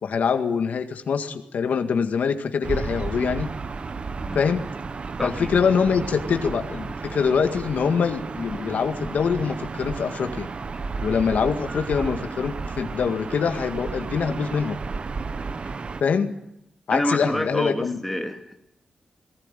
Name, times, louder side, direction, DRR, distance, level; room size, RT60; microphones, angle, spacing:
voice 1, 0.0-3.5 4.3-4.7 5.2-10.5 11.0-14.8 16.0-16.4 16.9-18.0, left 6 dB, 75° left, 6 dB, 2.0 m, -24 dB
Gull seagull / Ocean, 2.6-16.0, right 4 dB, 45° right, 1.0 m, -33 dB
voice 2, 5.2-5.5 16.9-18.6, left 1 dB, 5° left, 4 dB, 2.4 m, -27 dB
19.5 x 18.5 x 9.2 m, 0.81 s
wide cardioid pair, 115°, 3 cm